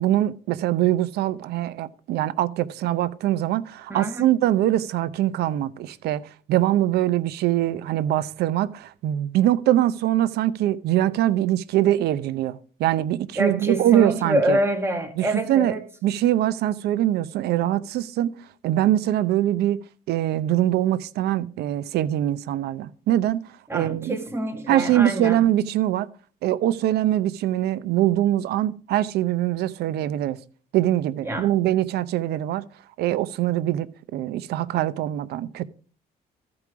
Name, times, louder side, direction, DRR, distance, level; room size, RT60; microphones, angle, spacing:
voice 1, 0.0-6.2 6.5-14.6 15.2-15.7 16.0-18.3 18.6-23.4 23.7-24.2 24.7-26.1 26.4-30.4 30.7-32.7 33.0-35.6, right 13 dB, 75° right, 0.6 m, -23 dB
voice 2, 3.9-4.3 13.4-15.8 23.7-25.5 31.2-31.5, right 1 dB, 15° right, 1.8 m, -26 dB
14.0 x 4.8 x 4.9 m
cardioid pair, 110°, 17 cm